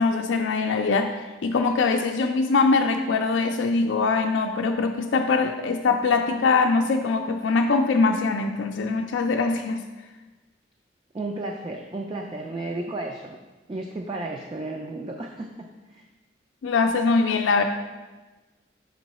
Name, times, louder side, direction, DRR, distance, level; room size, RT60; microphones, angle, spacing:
voice 1, 0.0-9.8 16.6-17.6, left 4 dB, 80° left, 4 dB, 0.4 m, -22 dB
voice 2, 11.1-13.4 13.7-16.1, right 2 dB, 25° right, 1 dB, 0.3 m, -33 dB
6.1 x 3.8 x 4.1 m, 1.2 s
head